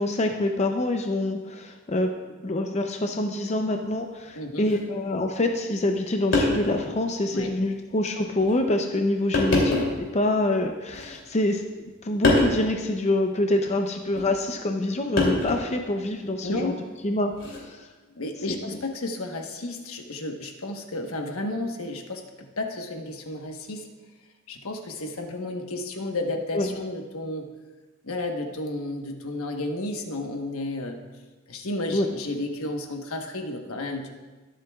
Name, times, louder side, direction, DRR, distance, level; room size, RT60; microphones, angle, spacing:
voice 1, 0.0-2.1 2.4-11.6 12.0-16.7 17.0-17.3 17.6-17.9 18.5-18.6 26.5-26.7 31.9-32.1, left 1 dB, 30° left, 4 dB, 0.6 m, -26 dB
voice 2, 4.3-4.7 7.3-7.5 9.4-9.6 16.4-16.8 18.1-23.9 24.5-27.5 28.0-31.0 31.5-34.1, left 2 dB, 80° left, 3 dB, 1.2 m, -32 dB
sound 1, 4.6-4.8 5.9-6.0 6.3-6.8 7.4-7.5 8.4-8.6 9.3-10.0 10.9-11.5 12.2-12.6 14.1-14.3 15.2-15.8 17.3-17.6, left 2 dB, 60° left, 2.9 m, -24 dB
21.5 x 7.7 x 2.4 m, 1.3 s
head